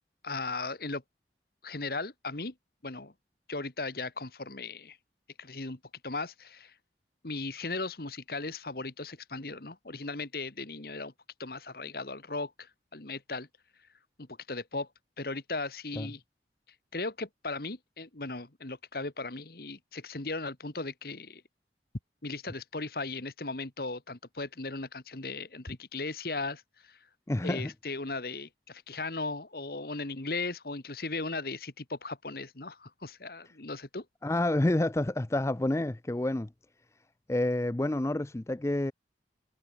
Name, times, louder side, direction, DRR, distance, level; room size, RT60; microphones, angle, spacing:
voice 1, 0.2-1.0 1.6-2.5 2.8-3.1 3.5-5.0 5.4-6.7 7.2-11.1 11.4-13.5 14.2-14.9 15.2-16.2 16.9-21.4 22.2-27.0 27.4-34.1, left 3 dB, 55° left, 1.7 m, -37 dB
voice 2, 27.3-27.7 34.2-36.5 37.3-38.9, left 1 dB, 15° left, 0.4 m, -28 dB
head